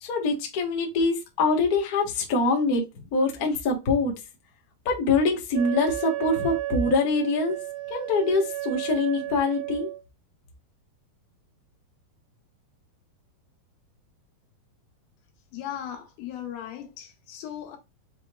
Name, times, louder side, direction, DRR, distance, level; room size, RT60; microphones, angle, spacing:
voice 1, 0.0-4.1 4.8-7.6 7.9-9.9, left 3 dB, 70° left, 0.8 m, -24 dB
Wind instrument woodwind instrument, 5.5-10.0, right 16 dB, 80° right, 2.8 m, -33 dB
voice 2, 15.5-17.8, left 10 dB, 90° left, 2.9 m, -37 dB
6.8 x 3.1 x 2.3 m
omnidirectional pair, 4.1 m